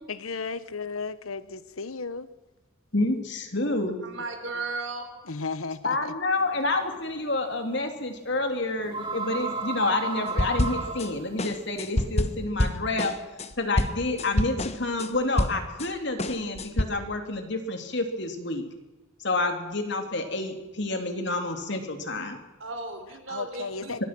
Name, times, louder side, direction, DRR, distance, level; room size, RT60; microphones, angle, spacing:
voice 1, 0.1-2.3 4.5-4.6 5.2-6.1 13.1-13.2 23.3-24.0, left 4 dB, 80° left, 14 dB, 1.1 m, -34 dB
voice 2, 2.9-4.0 5.8-13.1 13.6-18.6 19.2-22.4 24.0-24.1, left 2 dB, 55° left, 5 dB, 3.3 m, -28 dB
voice 3, 4.0-5.1 22.6-24.1, right 3 dB, 60° right, 5 dB, 4.8 m, -35 dB
sound 1, 6.4-12.4, right 4 dB, 25° right, 3.1 m, -35 dB
sound 2, 10.4-11.1 11.4-15.9 16.2-16.8, left 1 dB, 30° left, 1.2 m, -27 dB
24.5 x 21.0 x 6.2 m, 1.1 s
head